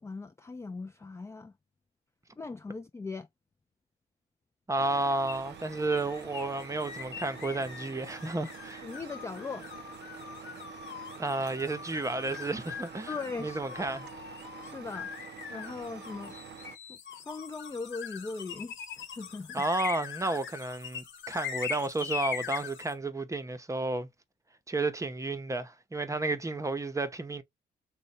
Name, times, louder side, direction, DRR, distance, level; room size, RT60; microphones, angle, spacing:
voice 1, 0.0-1.5 2.4-3.3 8.8-9.7 13.1-13.9 14.6-15.1 15.5-16.4 16.9-19.6, left 4 dB, 15° left, 0.3 m, -39 dB
voice 2, 4.7-8.9 11.2-13.1 13.4-14.1 19.5-24.1 24.7-27.4, right 2 dB, 15° right, 0.7 m, -32 dB
Truck, 4.8-16.8, right 7 dB, 60° right, 0.6 m, -47 dB
sound 1, 5.3-22.9, left 7 dB, 65° left, 1.2 m, -42 dB
3.1 x 2.2 x 4.0 m
cardioid pair, 90°, 20 cm